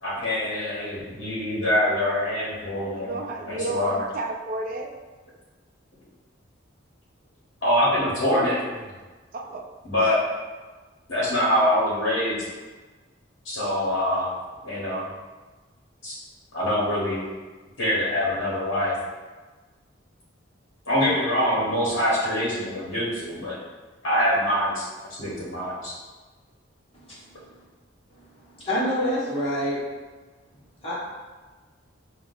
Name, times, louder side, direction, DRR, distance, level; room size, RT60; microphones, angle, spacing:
voice 1, 0.0-4.0 7.6-8.8 9.8-10.2 11.1-12.4 13.4-14.3 14.6-15.1 16.0-16.2 16.5-17.2 17.8-18.9 20.9-23.6 24.0-24.8 25.2-25.9, left 1 dB, 65° left, -8 dB, 1.2 m, -24 dB
voice 2, 2.9-4.9 9.3-9.6, right 2 dB, 45° right, 2 dB, 0.4 m, -32 dB
voice 3, 28.6-29.9 30.8-30.9, equal, 30° left, -8 dB, 1.2 m, -26 dB
5.8 x 2.4 x 2.6 m, 1.3 s
head